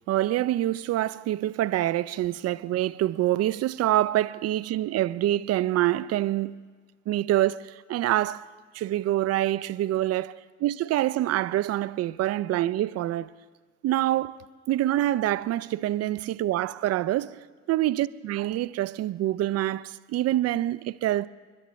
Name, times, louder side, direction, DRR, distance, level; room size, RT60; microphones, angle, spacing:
voice 1, 0.1-6.6 7.1-8.5 8.7-13.3 13.8-14.4 14.7-17.4 17.7-21.3, right 14 dB, 45° right, 0.5 m, -26 dB
30.0 x 11.0 x 3.1 m
hypercardioid pair, 65°, 36 cm